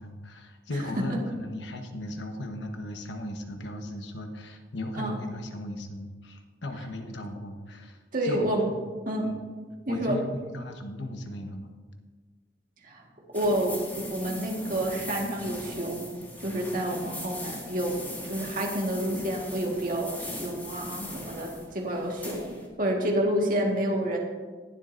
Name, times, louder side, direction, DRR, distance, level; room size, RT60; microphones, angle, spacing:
voice 1, 0.0-8.7 9.2-9.3 9.9-11.8, left 1 dB, 75° left, 4 dB, 1.2 m, -37 dB
voice 2, 8.1-8.7 9.1-9.3 9.9-10.2 12.8-13.0 13.3-18.0 18.3-24.2, right 1 dB, 50° right, -1 dB, 1.7 m, -29 dB
sound 1, 13.3-22.7, left 1 dB, 10° left, 2.0 m, -40 dB
20.0 x 7.7 x 2.6 m, 1.5 s
head